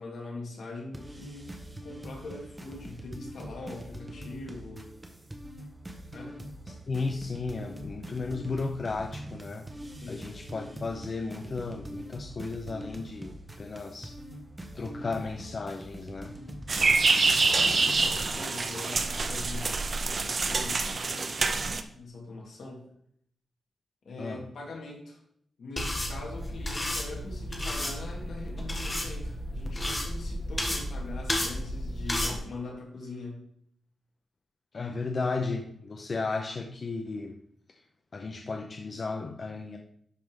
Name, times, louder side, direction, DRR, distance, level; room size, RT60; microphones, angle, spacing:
voice 1, 0.0-1.5 1.8-4.9 6.1-6.4 10.0-10.3 17.3-21.5 21.9-22.8 24.0-25.2 25.6-33.4, left 2 dB, 70° left, -1 dB, 2.5 m, -42 dB
sound 1, 0.9-18.4, right 1 dB, 15° right, 1.1 m, -43 dB
voice 2, 6.9-9.7 10.1-14.2 14.7-16.4 24.2-24.4 34.7-37.4 38.1-39.8, left 3 dB, 40° left, 4 dB, 0.6 m, -34 dB
sound 2, 16.7-21.8, right 4 dB, 40° right, 0.6 m, -26 dB
sound 3, 25.8-32.4, left 1 dB, 15° left, 1.3 m, -32 dB
11.0 x 4.8 x 3.7 m, 0.69 s
wide cardioid pair, 130°, 0 cm